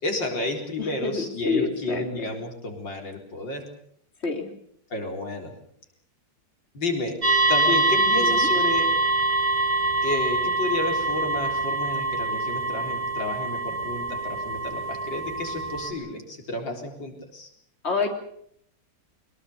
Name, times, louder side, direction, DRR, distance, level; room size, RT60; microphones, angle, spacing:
voice 1, 0.0-3.6 4.9-5.5 6.7-7.2 7.5-8.9 10.0-17.5, left 2 dB, 90° left, 3 dB, 4.9 m, -31 dB
voice 2, 0.8-2.0 4.2-4.5 8.0-8.5 17.8-18.1, left 4 dB, 35° left, 4 dB, 3.5 m, -28 dB
sound 1, 7.2-15.9, right 2 dB, 20° right, 4.3 m, -24 dB
23.5 x 22.5 x 6.9 m, 0.65 s
omnidirectional pair, 1.9 m